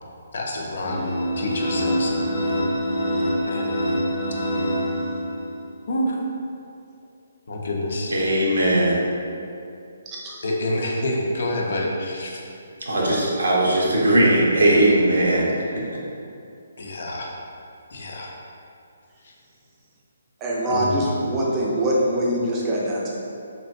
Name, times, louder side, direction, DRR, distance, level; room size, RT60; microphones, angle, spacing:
voice 1, 0.3-1.1 1.4-2.3 3.4-3.7 5.9-6.2 7.5-8.1 10.4-12.4 16.8-17.3 17.9-18.3 19.2-19.3 20.7-21.0, left 1 dB, 65° left, -1 dB, 0.5 m, -27 dB
sound 1, 0.8-5.6, equal, 15° left, 0.7 m, -25 dB
voice 2, 8.1-9.0 12.8-15.8, right 1 dB, 85° right, -4 dB, 0.7 m, -19 dB
voice 3, 20.4-23.1, right 1 dB, 20° right, -5 dB, 0.5 m, -23 dB
2.9 x 2.5 x 2.5 m, 2.6 s
hypercardioid pair, 150°, 0 cm